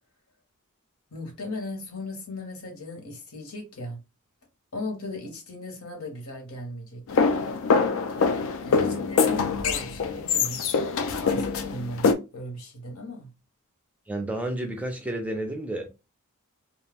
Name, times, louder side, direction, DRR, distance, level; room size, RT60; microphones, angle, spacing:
voice 1, 1.1-4.0 4.7-7.2 8.6-10.7 11.2-13.3, left 1 dB, 80° left, 1.0 m, -37 dB
sound 1, 7.1-12.1, left 5 dB, 65° left, 0.4 m, -24 dB
voice 2, 8.7-9.1 14.1-15.9, right 1 dB, 5° right, 0.4 m, -31 dB
2.3 x 2.1 x 3.3 m
head